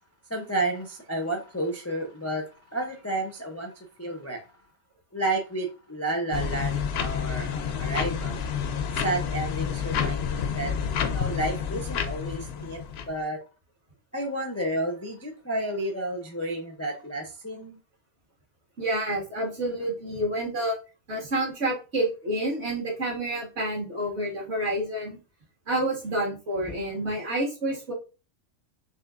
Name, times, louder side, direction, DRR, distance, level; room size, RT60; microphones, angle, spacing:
voice 1, 0.3-4.4 5.1-8.4 8.9-10.7 11.0-12.8 13.1-13.4 14.1-17.8, right 1 dB, 20° left, 1 dB, 0.4 m, -31 dB
sound 1, 6.3-13.1, left 7 dB, 65° left, 0.7 m, -29 dB
voice 2, 18.8-20.8 21.1-25.2 25.7-27.9, right 1 dB, 60° right, -3 dB, 2.0 m, -29 dB
5.5 x 2.8 x 2.4 m, 0.33 s
omnidirectional pair, 1.3 m